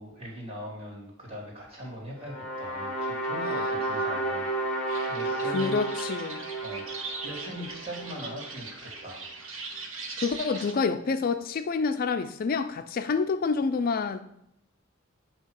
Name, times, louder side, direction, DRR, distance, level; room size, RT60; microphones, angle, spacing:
voice 1, 0.0-5.8 6.6-9.2, equal, 30° right, 2.6 m, -41 dB
sound 1, 2.2-8.5, right 2 dB, 5° left, 1.4 m, -32 dB
sound 2, 4.9-10.7, right 3 dB, 75° right, 1.0 m, -40 dB
voice 2, 5.4-6.4 10.2-14.2, left 4 dB, 45° left, 0.4 m, -28 dB
8.2 x 2.9 x 6.2 m
head